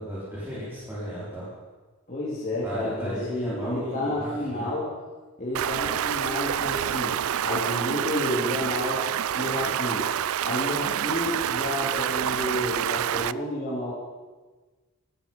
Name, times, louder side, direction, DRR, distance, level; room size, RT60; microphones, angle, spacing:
voice 1, 0.0-1.5 2.6-4.7, equal, 10° right, -11 dB, 4.9 m, -34 dB
voice 2, 2.1-4.9 5.4-7.2 7.4-9.1 9.3-10.1 10.4-13.9, left 1 dB, 35° left, -9 dB, 3.6 m, -30 dB
Stream, 5.5-13.3, right 10 dB, 70° right, 0.4 m, -27 dB
16.0 x 15.0 x 5.7 m, 1.3 s
head